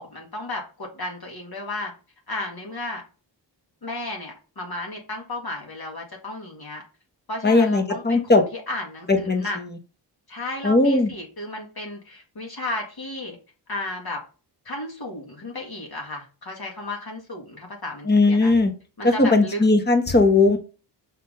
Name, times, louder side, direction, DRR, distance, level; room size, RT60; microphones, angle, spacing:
voice 1, 0.0-1.9 2.3-3.0 3.8-6.8 7.3-8.2 8.5-9.6 10.3-13.4 13.7-14.2 14.7-18.5 19.0-19.6, left 2 dB, 55° left, 0 dB, 2.0 m, -33 dB
voice 2, 7.4-8.4 9.1-9.4 10.6-11.1 18.1-18.7 19.0-20.6, left 3 dB, 20° left, 6 dB, 1.2 m, -18 dB
6.0 x 5.7 x 5.4 m, 0.34 s
wide cardioid pair, 95°, 44 cm